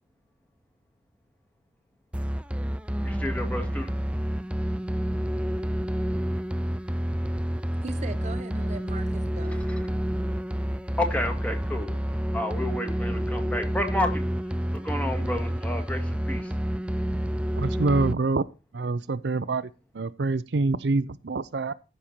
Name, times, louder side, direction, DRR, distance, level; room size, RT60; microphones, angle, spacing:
sound 1, 2.1-18.1, right 1 dB, 5° right, 0.4 m, -29 dB
voice 1, 3.0-4.0 9.7-9.8 11.0-12.0 12.3-14.2 14.7-16.5, left 1 dB, 10° left, 1.7 m, -31 dB
voice 2, 7.5-9.7, right 3 dB, 40° right, 0.8 m, -40 dB
voice 3, 17.6-18.4 18.7-21.7, right 3 dB, 70° right, 0.6 m, -26 dB
13.5 x 5.6 x 4.4 m
head